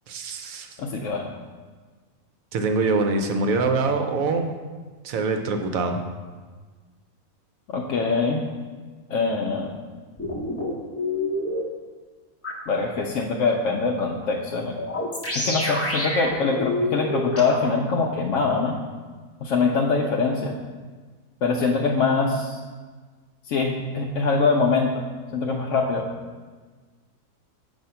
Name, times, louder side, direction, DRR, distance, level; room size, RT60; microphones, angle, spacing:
voice 1, 0.1-0.7 2.5-4.5 5.0-6.0, right 3 dB, 70° right, 5 dB, 1.0 m, -24 dB
voice 2, 0.8-1.2 7.7-8.4 9.1-9.7 12.7-14.7 15.3-18.8 19.4-20.5 21.4-22.6 23.5-25.0 25.3-26.0, left 4 dB, 70° left, -1 dB, 0.8 m, -23 dB
sound 1, 10.2-11.6 12.4-12.5 14.8-17.7, left 1 dB, 20° left, 0.4 m, -27 dB
7.5 x 2.7 x 5.6 m, 1.4 s
omnidirectional pair, 1.6 m